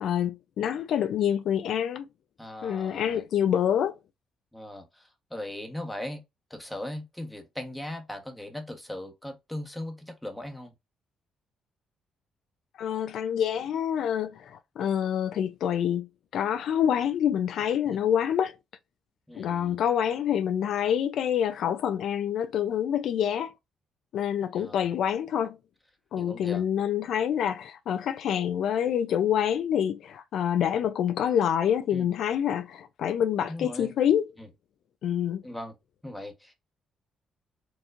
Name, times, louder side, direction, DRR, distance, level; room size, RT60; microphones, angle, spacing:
voice 1, 0.0-2.0 2.6-3.9 12.8-18.5 19.3-23.5 24.1-25.6 26.1-34.3 35.0-35.4, left 9 dB, 70° left, 0.4 m, -27 dB
voice 2, 2.4-3.2 4.5-6.2 6.5-10.7 17.9-18.0 19.3-19.8 24.5-24.9 26.2-26.6 31.9-32.0 33.5-33.9 34.4-34.5 35.4-35.7 36.0-36.5, left 1 dB, 5° left, 1.1 m, -39 dB
4.5 x 2.9 x 2.5 m
cardioid pair, 90°, 0 cm